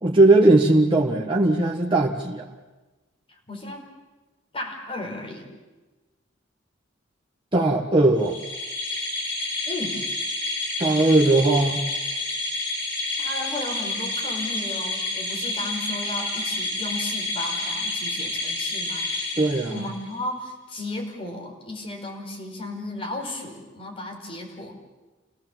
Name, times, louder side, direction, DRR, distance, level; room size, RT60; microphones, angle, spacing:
voice 1, 0.0-2.5 7.5-8.4 10.8-11.9 19.4-19.8, right 2 dB, 25° right, -2 dB, 1.5 m, -19 dB
voice 2, 3.5-3.9 4.5-5.5 9.7-10.0 13.2-19.1 19.7-24.8, left 2 dB, 30° left, 0 dB, 5.3 m, -34 dB
sound 1, 8.2-20.1, left 2 dB, 75° left, 7.1 m, -29 dB
29.0 x 17.5 x 7.4 m, 1.2 s
head